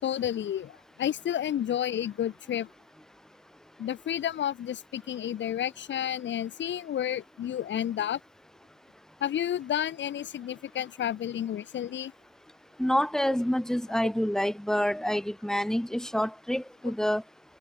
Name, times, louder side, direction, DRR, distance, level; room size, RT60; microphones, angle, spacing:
voice 1, 0.0-2.7 3.8-8.2 9.2-12.1, left 10 dB, 65° left, 4.6 m, -31 dB
voice 2, 12.8-17.2, equal, 5° left, 5.8 m, -27 dB
cardioid pair, 90°, 20 cm